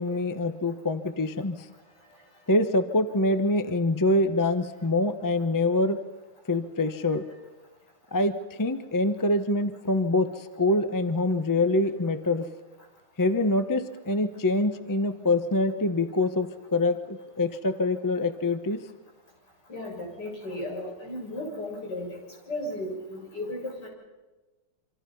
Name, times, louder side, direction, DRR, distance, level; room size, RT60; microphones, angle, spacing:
voice 1, 0.0-1.7 2.5-6.0 6.5-7.3 8.1-12.5 13.2-18.8, left 2 dB, 25° left, 10 dB, 0.4 m, -25 dB
voice 2, 19.7-22.2 22.5-23.9, left 1 dB, 50° left, 0 dB, 7.6 m, -35 dB
27.5 x 25.5 x 5.6 m, 1.2 s
omnidirectional pair, 2.4 m